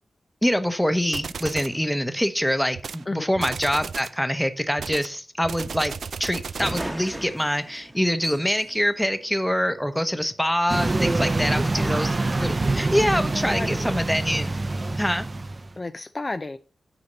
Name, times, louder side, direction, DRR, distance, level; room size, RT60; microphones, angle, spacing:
voice 1, 0.4-14.6 15.0-15.3, equal, 5° left, 10 dB, 0.9 m, -25 dB
sound 1, 1.1-1.8 2.7-3.0 3.3-4.2 4.8-7.0, right 6 dB, 80° right, 0.4 m, -34 dB
sound 2, 6.1-6.2 6.5-10.0, right 1 dB, 20° right, 1.1 m, -37 dB
sound 3, 10.7-15.7, right 2 dB, 35° right, 0.6 m, -25 dB
voice 2, 11.4-11.9 13.5-13.9 15.8-16.6, left 2 dB, 35° left, 9 dB, 0.4 m, -32 dB
9.8 x 4.3 x 5.2 m, 0.37 s
wide cardioid pair, 80°, 0 cm